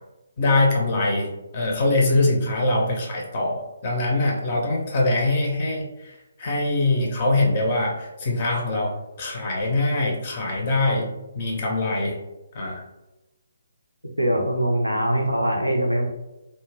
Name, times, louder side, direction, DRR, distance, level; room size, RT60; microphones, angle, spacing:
voice 1, 0.4-12.2 12.5-12.8, left 2 dB, 35° left, -1 dB, 0.4 m, -23 dB
voice 2, 14.2-16.1, right 1 dB, 85° right, 0 dB, 0.5 m, -22 dB
2.0 x 2.0 x 3.1 m, 0.98 s
figure-of-eight pair, 140°, 0 cm